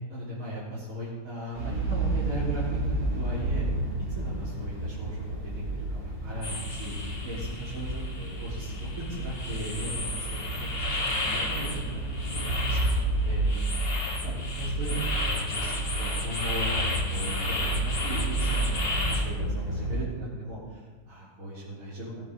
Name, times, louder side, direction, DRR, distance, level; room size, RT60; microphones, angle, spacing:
voice 1, 0.0-3.7 4.1-5.4 5.7-6.9 7.2-8.9 9.2-12.8 13.2-13.4 13.7-22.3, right 1 dB, 45° right, -10 dB, 4.0 m, -38 dB
sound 1, 1.5-20.0, right 2 dB, 75° right, 4.7 m, -31 dB
sound 2, 6.4-19.3, left 2 dB, 35° left, 1.7 m, -34 dB
18.0 x 8.4 x 5.4 m, 1.4 s
omnidirectional pair, 2.0 m